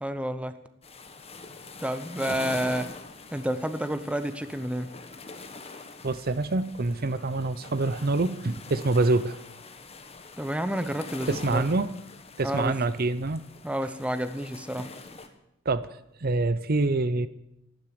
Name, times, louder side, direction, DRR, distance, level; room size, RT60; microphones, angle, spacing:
voice 1, 0.0-0.6 1.8-2.9 3.3-4.9 10.4-11.7 12.4-12.8 13.6-14.9, equal, 5° right, 11 dB, 0.8 m, -30 dB
sound 1, 0.8-15.3, left 3 dB, 30° left, 1.5 m, -44 dB
voice 2, 6.0-9.4 11.3-11.9 12.4-13.4 15.7-15.9 16.2-17.3, right 2 dB, 50° right, 15 dB, 0.7 m, -26 dB
13.0 x 12.0 x 8.7 m, 0.83 s
head